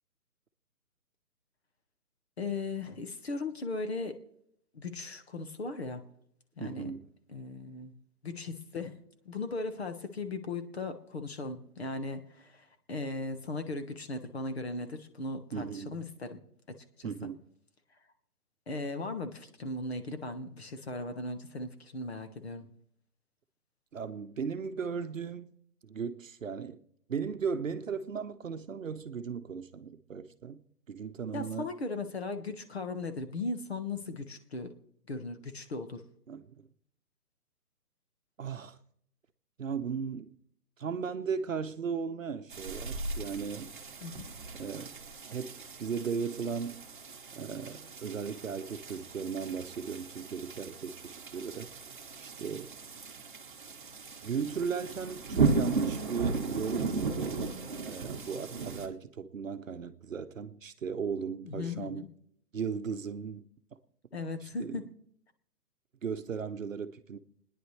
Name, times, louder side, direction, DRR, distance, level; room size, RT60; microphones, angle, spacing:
voice 1, 2.4-4.2 4.7-6.0 6.6-6.9 7.3-7.9 8.2-9.0 9.2-16.4 17.0-17.1 18.7-22.7 31.3-34.7 35.1-36.0 44.0-44.2 61.4-62.1 64.1-64.8, left 3 dB, 40° left, 1.3 m, -37 dB
voice 2, 6.6-7.1 15.5-16.0 17.0-17.4 23.9-25.5 25.8-26.8 27.1-30.6 30.9-31.7 36.3-36.6 38.4-38.8 39.6-40.3 40.8-43.7 44.5-45.0 45.3-46.8 47.3-51.7 52.2-52.7 54.2-57.4 57.8-62.0 62.5-63.4 64.4-64.8 66.0-67.2, right 6 dB, 55° right, 0.9 m, -36 dB
sound 1, 42.5-58.9, right 4 dB, 35° right, 1.1 m, -36 dB
30.0 x 10.0 x 3.3 m
hypercardioid pair, 180°, 46 cm